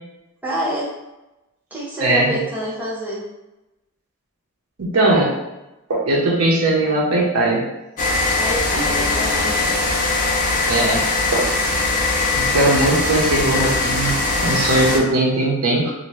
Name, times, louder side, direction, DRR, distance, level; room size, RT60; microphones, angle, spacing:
voice 1, 0.4-0.9 1.7-3.2 8.4-9.8, right 1 dB, 10° right, -8 dB, 0.9 m, -27 dB
voice 2, 2.0-2.4 4.8-5.3 5.9-7.6 10.7-11.5 12.3-15.9, right 2 dB, 85° right, -3 dB, 0.8 m, -19 dB
sound 1, 8.0-15.0, left 3 dB, 35° left, 0.5 m, -20 dB
sound 2, 8.8-12.5, left 1 dB, 40° right, 1.0 m, -38 dB
2.7 x 2.5 x 3.1 m, 0.99 s
head